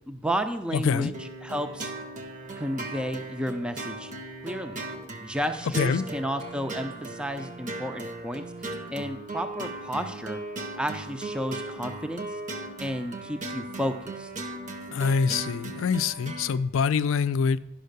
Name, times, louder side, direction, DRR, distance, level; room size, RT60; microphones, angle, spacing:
voice 1, 0.0-1.9 2.6-4.1 4.4-4.9 5.2-8.5 8.9-10.4 10.8-12.3 12.8-14.3, equal, 5° right, 0.4 m, -32 dB
voice 2, 0.7-1.1 5.8-6.0 14.9-17.6, left 6 dB, 65° left, 0.4 m, -25 dB
sound 1, 1.1-16.6, right 2 dB, 35° right, 0.8 m, -38 dB
11.5 x 5.6 x 6.6 m
head